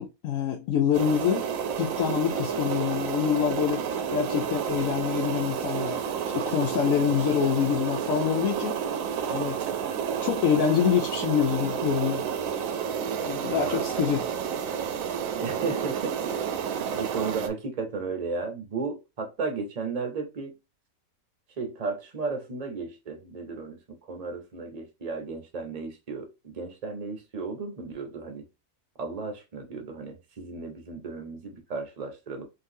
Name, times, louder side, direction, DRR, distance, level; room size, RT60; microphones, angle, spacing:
voice 1, 0.0-1.5 1.8-3.8 4.1-6.0 6.3-8.8 9.3-9.6 10.2-12.3 13.2-14.2, left 8 dB, 70° left, 1.0 m, -26 dB
sound 1, 0.9-17.5, right 7 dB, 70° right, 1.0 m, -30 dB
voice 2, 13.5-13.8 15.4-16.2 16.6-20.6 21.6-28.5 29.0-32.5, right 4 dB, 35° right, 0.7 m, -34 dB
3.7 x 2.6 x 2.6 m
omnidirectional pair, 1.5 m